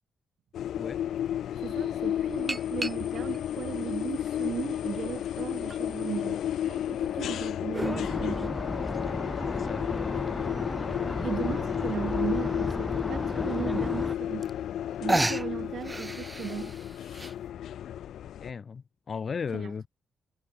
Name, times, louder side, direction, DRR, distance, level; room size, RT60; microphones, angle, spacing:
sound 1, 0.5-18.5, left 10 dB, 80° left, 4.3 m, -32 dB
sound 2, 0.7-0.8 2.5-3.4 4.1-5.1 5.7-5.8 7.0-8.0 9.7-9.8 10.3-10.4 10.5-10.6 11.0-11.3 12.3-12.4 12.9-13.0 14.1-14.2 14.4-14.8 15.1-17.3, right 2 dB, 15° right, 7.9 m, -33 dB
voice 1, 1.6-6.4 6.7-8.6 11.2-14.5 15.0-16.8 19.5-19.7, right 8 dB, 65° right, 5.6 m, -36 dB
sound 3, 7.8-14.1, left 1 dB, 10° left, 3.3 m, -34 dB
voice 2, 9.4-10.2 18.4-19.9, left 6 dB, 45° left, 6.2 m, -36 dB
cardioid pair, 100°, 0 cm